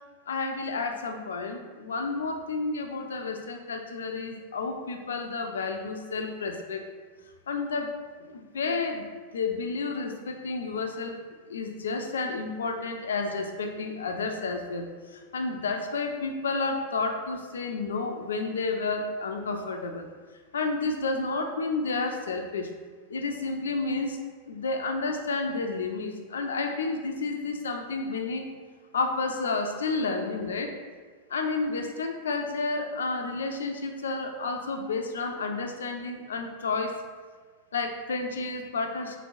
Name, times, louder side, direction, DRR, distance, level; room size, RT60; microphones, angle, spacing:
voice 1, 0.3-6.8 7.5-7.9 8.2-9.1 9.3-11.2 11.5-20.1 20.5-22.7 23.1-24.2 24.5-28.5 28.9-30.7 31.3-37.0 37.7-39.2, left 3 dB, 65° left, 4 dB, 0.3 m, -31 dB
3.3 x 2.9 x 2.4 m, 1.5 s
figure-of-eight pair, 90°, 0 cm